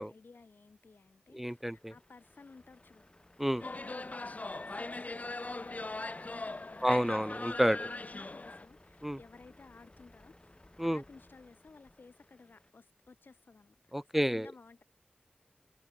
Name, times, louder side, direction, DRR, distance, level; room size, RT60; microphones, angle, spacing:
voice 1, 0.0-3.0 3.5-4.4 4.6-5.9 6.3-7.3 7.7-13.8 14.1-14.8, left 4 dB, 80° left, 4.3 m, -56 dB
voice 2, 1.3-1.9 3.4-3.6 6.8-7.9 9.0-9.2 10.8-11.0 13.9-14.5, equal, 5° right, 0.5 m, -30 dB
Truck, 1.5-12.7, left 1 dB, 30° left, 5.1 m, -60 dB
sound 1, 3.6-8.7, left 2 dB, 50° left, 2.3 m, -40 dB
wide cardioid pair, 55°, 3 cm